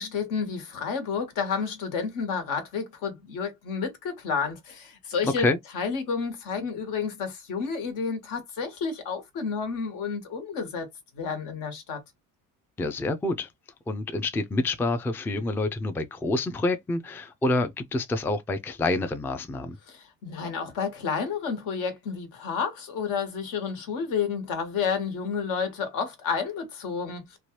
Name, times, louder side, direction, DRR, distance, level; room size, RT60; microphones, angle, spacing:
voice 1, 0.0-5.5 5.7-10.9 11.1-12.0 19.9-27.4, left 6 dB, 75° left, 1.3 m, -30 dB
voice 2, 5.2-5.6 12.8-13.5 13.9-19.8, left 2 dB, 5° left, 0.3 m, -27 dB
2.9 x 2.3 x 3.0 m
cardioid pair, 115°, 33 cm